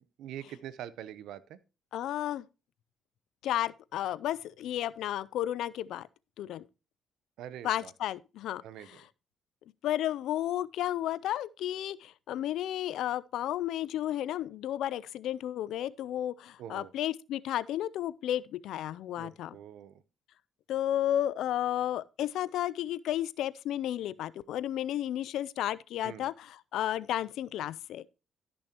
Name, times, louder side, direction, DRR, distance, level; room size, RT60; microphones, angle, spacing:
voice 1, 0.0-1.6 7.4-7.9 8.6-9.0 16.6-16.9 19.1-20.0 26.0-26.3, right 11 dB, 85° right, 0.7 m, -44 dB
voice 2, 1.9-2.4 3.4-6.1 6.4-6.6 7.6-8.6 9.8-19.6 20.7-28.1, left 12 dB, 80° left, 0.4 m, -32 dB
14.0 x 6.2 x 3.0 m
cardioid pair, 90°, 0 cm